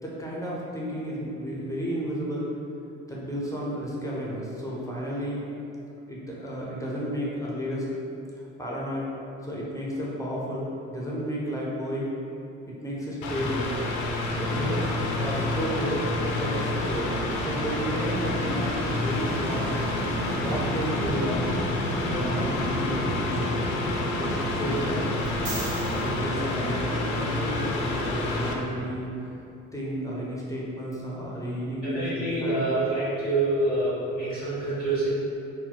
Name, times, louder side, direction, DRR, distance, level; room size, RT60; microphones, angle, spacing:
voice 1, 0.0-2.5 3.1-5.4 6.1-7.9 8.3-9.1 9.4-12.1 12.7-13.7 14.3-14.9 15.2-17.1 17.4-19.7 20.4-21.6 22.0-25.2 25.9-29.3 29.7-32.6, equal, 10° left, -5 dB, 0.5 m, -32 dB
Mechanical fan, 13.2-28.5, left 2 dB, 60° left, 0.5 m, -29 dB
Fixed-wing aircraft airplane, 14.2-29.4, equal, 35° right, 1.3 m, -34 dB
sound 1, 25.3-27.5 30.9-31.0, right 3 dB, 55° right, 0.7 m, -39 dB
voice 2, 31.9-35.1, right 2 dB, 85° right, -15 dB, 1.3 m, -26 dB
2.7 x 2.0 x 3.8 m, 2.8 s
figure-of-eight pair, 50°, 36 cm